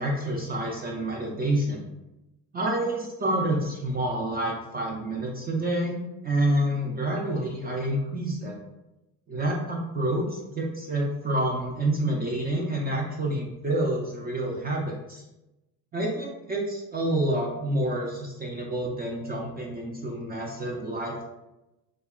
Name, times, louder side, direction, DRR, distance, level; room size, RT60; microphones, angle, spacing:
voice 1, 0.0-1.8 2.5-8.6 9.3-15.2 15.9-21.3, right 1 dB, 25° right, -2 dB, 0.4 m, -28 dB
2.8 x 2.3 x 2.3 m, 0.95 s
cardioid pair, 105°, 40 cm